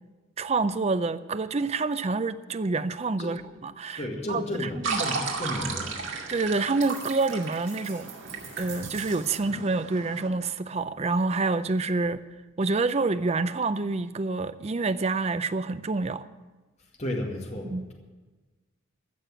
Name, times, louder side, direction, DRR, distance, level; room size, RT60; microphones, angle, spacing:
voice 1, 0.4-4.0 4.3-5.0 6.3-8.1 8.6-12.2 12.6-16.2 17.6-17.8, right 3 dB, 30° right, 0.5 m, -27 dB
voice 2, 4.0-6.0 17.0-17.9, left 1 dB, 35° left, 2.1 m, -33 dB
Lapping water sound, 4.8-10.3, right 4 dB, 65° right, 2.2 m, -34 dB
sound 1, 6.8-9.6, right 7 dB, 45° right, 3.5 m, -45 dB
15.0 x 6.7 x 9.8 m
head